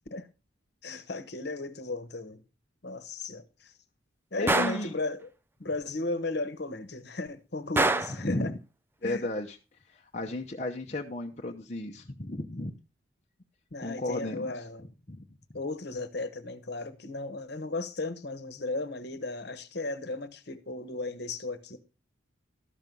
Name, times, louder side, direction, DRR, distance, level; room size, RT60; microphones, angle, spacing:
voice 1, 0.8-2.4 2.8-3.7 4.3-5.3 5.6-8.5 9.0-9.3 13.7-14.9 15.5-21.8, left 2 dB, 55° left, 1.2 m, -35 dB
voice 2, 4.4-4.9 8.2-8.6 9.0-9.6 9.9-12.7 13.8-14.5 15.1-15.3, left 1 dB, 35° left, 0.8 m, -34 dB
Gunshot gunfire, 4.5-4.9 7.8-8.2, right 2 dB, 10° right, 0.5 m, -25 dB
13.0 x 6.1 x 5.3 m
head